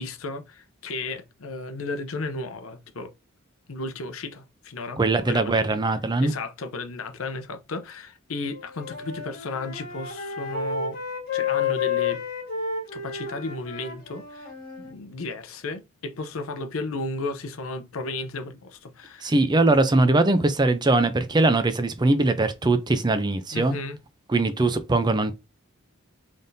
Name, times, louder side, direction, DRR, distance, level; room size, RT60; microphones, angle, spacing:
voice 1, 0.0-3.1 3.7-5.8 6.2-11.0 11.3-12.2 12.9-14.5 14.8-19.3 23.5-24.0, left 3 dB, 75° left, 0.7 m, -34 dB
voice 2, 5.0-6.3 19.2-23.8 24.3-25.3, right 2 dB, 20° right, 0.5 m, -21 dB
Wind instrument woodwind instrument, 8.5-14.9, left 6 dB, 45° left, 1.4 m, -31 dB
4.0 x 3.5 x 2.6 m
head